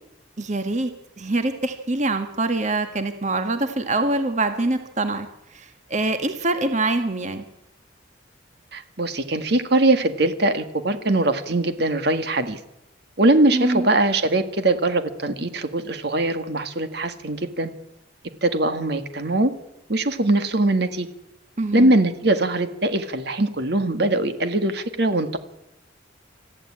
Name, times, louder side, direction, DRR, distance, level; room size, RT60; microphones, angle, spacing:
voice 1, 0.4-0.9 1.2-5.3 5.5-7.4 13.5-13.9 21.6-21.9, right 2 dB, 35° right, 7 dB, 1.6 m, -24 dB
voice 2, 8.7-12.6 13.2-17.7 18.4-19.5 19.9-21.1 21.7-25.4, right 2 dB, 55° right, 9 dB, 1.7 m, -21 dB
26.0 x 14.5 x 9.8 m, 0.90 s
head